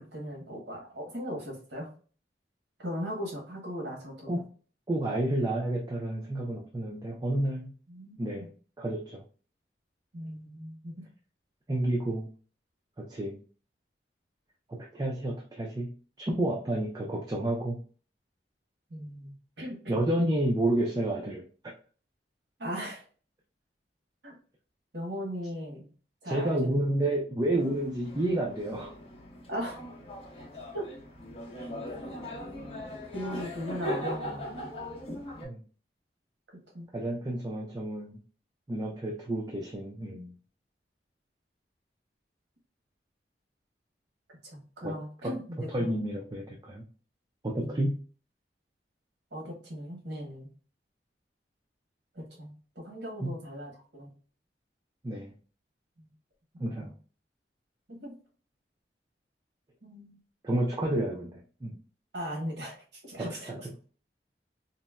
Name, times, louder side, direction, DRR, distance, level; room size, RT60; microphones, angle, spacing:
voice 1, 0.0-1.9 2.8-4.4 7.9-8.5 10.1-10.9 18.9-20.0 22.6-23.0 24.2-24.3 24.9-25.9 26.2-26.8 29.5-29.8 30.7-30.9 33.1-34.5 36.7-36.9 44.4-45.9 47.6-48.0 49.3-50.5 52.1-54.1 56.0-56.1 56.7-56.9 57.9-58.2 59.8-60.2 62.1-63.7, equal, 75° right, -1 dB, 1.1 m, -38 dB
voice 2, 4.9-7.7 8.2-8.5 8.8-9.2 11.7-12.3 13.0-13.4 14.7-17.8 19.9-21.7 26.2-28.9 31.6-31.7 35.4-35.6 36.9-38.2 38.7-40.3 44.8-45.0 45.2-46.8 47.4-48.0 53.2-53.4 55.0-55.3 56.6-56.9 60.4-61.8 63.2-63.6, right 1 dB, 20° right, -1 dB, 0.3 m, -30 dB
sound 1, 27.5-35.5, equal, 35° left, 0.8 m, -39 dB
3.9 x 2.1 x 2.3 m, 0.40 s
head